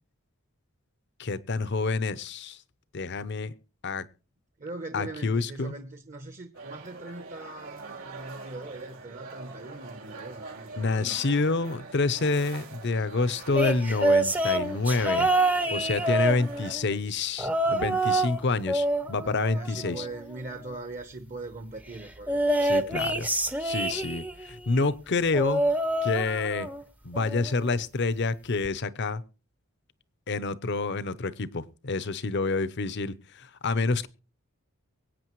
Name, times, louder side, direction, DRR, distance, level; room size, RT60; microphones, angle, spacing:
voice 1, 1.2-2.6 2.9-3.5 3.8-4.1 4.9-5.7 10.8-15.3 15.7-20.1 22.6-23.3 23.6-25.6 26.0-26.7 27.0-29.2 30.3-34.1, left 3 dB, 55° left, 0.7 m, -28 dB
voice 2, 4.6-11.2 19.2-22.5 22.8-23.0, right 2 dB, 35° right, 0.9 m, -41 dB
sound 1, 6.5-16.8, right 3 dB, 80° right, 3.4 m, -44 dB
sound 2, 13.5-16.8 17.4-18.4 18.7-20.2 22.3-24.4 25.3-26.8 27.1-27.5 28.6-28.7, right 1 dB, 5° right, 0.6 m, -26 dB
24.0 x 8.7 x 3.1 m
head